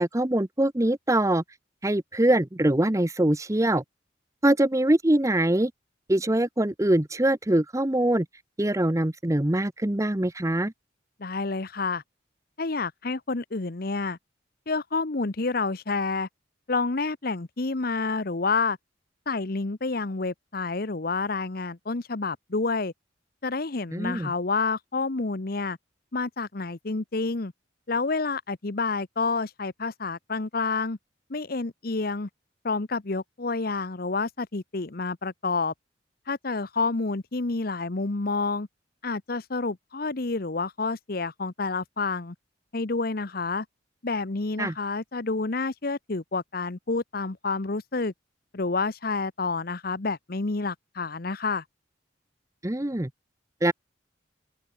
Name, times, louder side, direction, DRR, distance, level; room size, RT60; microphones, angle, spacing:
voice 1, 0.0-1.4 1.8-3.8 4.4-5.7 6.1-8.3 8.6-10.7 23.9-24.3 44.6-44.7 52.6-53.1 53.6-53.7, right 1 dB, 15° right, 0.8 m, -23 dB
voice 2, 11.2-12.0 12.6-14.2 14.7-16.3 16.7-18.8 19.3-22.9 23.4-25.8 26.1-27.5 27.9-31.0 31.3-32.3 32.6-35.7 36.3-38.7 39.0-42.3 42.7-43.6 44.0-48.1 48.5-51.6, left 3 dB, 50° left, 0.9 m, -29 dB
open air
head